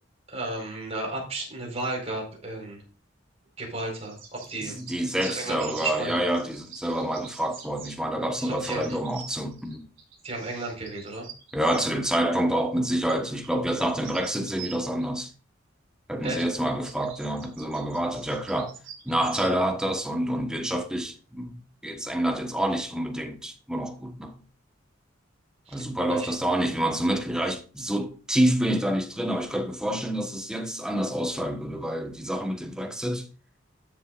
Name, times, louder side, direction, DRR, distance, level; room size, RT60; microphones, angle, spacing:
voice 1, 0.3-2.8 3.6-4.7 5.2-6.2 8.4-9.0 10.2-11.3 16.2-16.4 25.7-25.8 26.1-26.3, right 2 dB, 35° right, 4.6 m, -33 dB
sound 1, 4.0-11.9 13.1-15.1 16.3-19.6, right 6 dB, 70° right, 4.9 m, -45 dB
voice 2, 4.6-9.9 11.5-15.3 16.1-18.7 19.0-24.4 25.7-33.3, right 1 dB, 5° right, 1.2 m, -27 dB
13.5 x 7.2 x 2.5 m
head